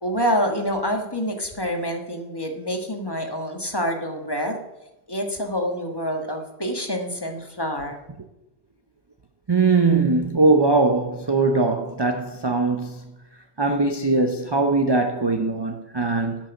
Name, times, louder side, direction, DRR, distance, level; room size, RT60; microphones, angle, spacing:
voice 1, 0.0-4.6 5.1-8.0, equal, 20° left, 1.4 m, -27 dB
voice 2, 9.5-13.1 13.6-16.5, right 3 dB, 30° right, 0.6 m, -21 dB
11.5 x 6.2 x 7.0 m
omnidirectional pair, 1.2 m